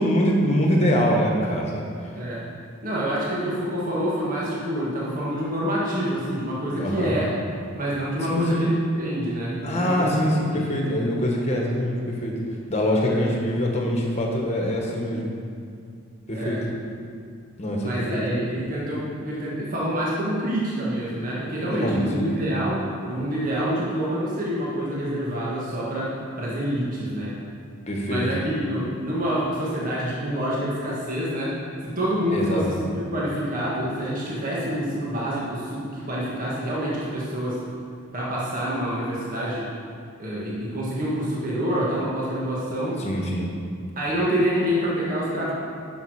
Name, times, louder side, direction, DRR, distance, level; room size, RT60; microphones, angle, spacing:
voice 1, 0.0-1.8 6.8-7.2 8.3-8.7 9.6-12.4 12.7-15.3 16.3-16.7 17.6-18.5 21.7-22.6 27.9-28.3 32.3-32.8 43.0-43.5, equal, 30° left, -1 dB, 1.4 m, -24 dB
voice 2, 2.8-7.3 7.7-10.7 13.1-13.2 16.3-16.6 17.8-27.3 28.1-31.6 31.8-37.6 38.1-39.7 40.2-43.0 43.9-45.5, equal, 40° right, -6 dB, 1.5 m, -27 dB
10.5 x 6.5 x 4.9 m, 2.3 s
head